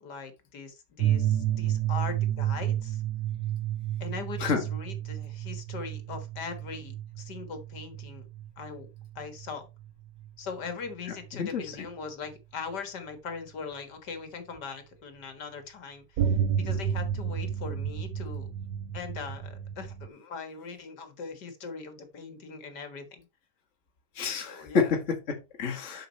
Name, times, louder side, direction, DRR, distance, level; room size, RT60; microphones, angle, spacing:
voice 1, 0.0-3.0 4.0-8.2 8.6-8.9 9.2-9.7 10.4-18.5 18.9-23.3 24.4-24.9, left 5 dB, 70° left, 2.1 m, -40 dB
sound 1, 1.0-10.3 11.3-11.4 16.2-20.1, right 10 dB, 85° right, 1.3 m, -31 dB
voice 2, 11.3-11.9 24.2-26.1, left 5 dB, 45° left, 1.8 m, -29 dB
7.7 x 6.3 x 4.1 m
omnidirectional pair, 1.9 m